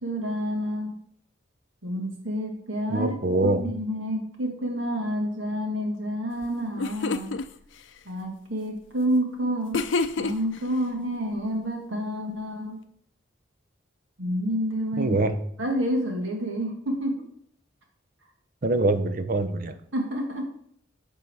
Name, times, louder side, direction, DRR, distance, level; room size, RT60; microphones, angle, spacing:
voice 1, 0.0-1.0 1.8-3.1 3.4-7.4 8.1-9.8 10.2-12.8 14.2-15.1 15.6-17.2 19.9-20.6, equal, 85° right, 1 dB, 1.8 m, -29 dB
voice 2, 2.9-3.6 15.0-15.4 18.6-19.8, right 2 dB, 45° right, 10 dB, 0.6 m, -24 dB
sound 1, 6.4-6.5 6.8-7.5 9.7-10.6, left 3 dB, 70° left, 0.5 m, -27 dB
11.5 x 3.8 x 4.6 m, 0.68 s
head